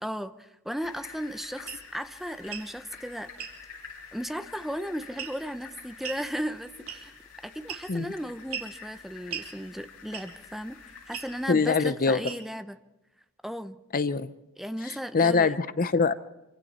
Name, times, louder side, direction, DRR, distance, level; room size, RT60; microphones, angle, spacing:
voice 1, 0.0-3.3 4.1-7.1 7.4-12.8 13.4-13.8 14.6-15.6, equal, ahead, 10 dB, 0.8 m, -36 dB
sound 1, 0.8-11.5, left 6 dB, 70° left, 7.4 m, -49 dB
sound 2, 1.7-1.8 2.4-2.7 3.4-3.6 5.2-5.5 6.0-6.2 6.9-7.2 7.7-8.0 8.5-8.7 9.3-9.5 10.1-10.4 11.1-11.3 12.2-12.6, right 8 dB, 75° right, 3.4 m, -37 dB
voice 2, 11.5-12.2 13.9-14.3 14.9-16.1, left 4 dB, 40° left, 14 dB, 0.7 m, -24 dB
27.0 x 25.0 x 4.3 m, 1.0 s
head